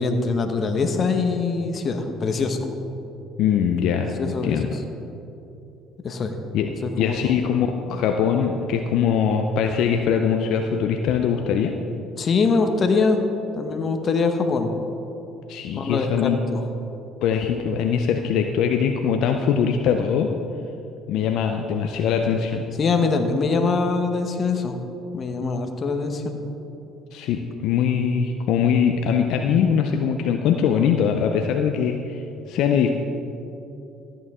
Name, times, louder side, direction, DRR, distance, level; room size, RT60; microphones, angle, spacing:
voice 1, 0.0-2.6 4.0-4.6 6.0-6.3 6.7-7.3 12.2-13.3 13.5-14.7 15.7-16.6 22.8-24.8 25.1-26.4 29.6-29.7, left 4 dB, 45° left, 5 dB, 1.1 m, -23 dB
voice 2, 3.4-4.8 6.5-6.7 7.0-11.7 15.5-16.4 17.2-20.3 21.1-22.6 27.1-32.9, left 7 dB, 70° left, 4 dB, 0.6 m, -22 dB
13.5 x 8.9 x 3.7 m, 2.8 s
supercardioid pair, 80°, 0 cm